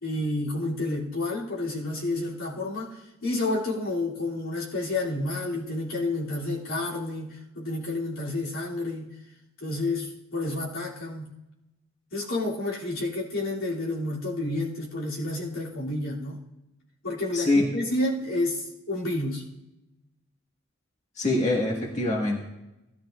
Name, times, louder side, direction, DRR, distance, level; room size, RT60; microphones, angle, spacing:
voice 1, 0.0-9.1 9.6-11.3 12.1-16.4 17.0-19.4, left 2 dB, 85° left, -6 dB, 3.1 m, -30 dB
voice 2, 17.3-17.7 21.2-22.4, left 2 dB, 35° left, -2 dB, 1.9 m, -24 dB
17.0 x 12.0 x 2.6 m, 0.94 s
head